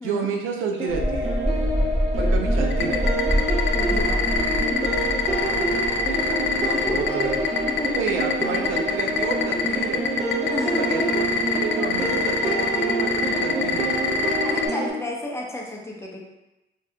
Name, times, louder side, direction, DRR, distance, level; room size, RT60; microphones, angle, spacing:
voice 1, 0.0-1.4 2.2-3.1 6.1-7.4 7.9-10.3 10.8-14.0, right 5 dB, 90° right, 2 dB, 0.5 m, -30 dB
sound 1, 0.8-14.9, right 2 dB, 35° right, 0.9 m, -27 dB
sound 2, 0.9-8.3 8.7-8.9, equal, 15° right, 1.1 m, -26 dB
sound 3, 2.7-14.7, left 8 dB, 65° left, 0.4 m, -24 dB
voice 2, 3.7-4.4 4.7-4.9 6.7-7.3 7.8-7.9 10.5-11.2 14.4-16.2, left 1 dB, 15° left, -2 dB, 0.7 m, -31 dB
2.7 x 2.3 x 3.3 m, 0.99 s
cardioid pair, 90°, 20 cm